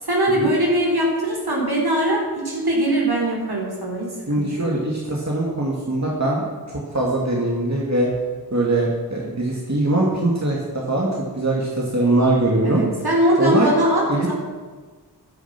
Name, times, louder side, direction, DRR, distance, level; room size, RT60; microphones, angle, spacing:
voice 1, 0.0-4.7 12.6-14.3, right 1 dB, 70° right, -2 dB, 4.2 m, -21 dB
voice 2, 4.3-8.1 8.5-12.8 13.4-13.7 14.1-14.3, right 2 dB, 45° right, -3 dB, 2.4 m, -22 dB
14.0 x 10.5 x 6.0 m, 1.4 s
wide cardioid pair, 45°, 39 cm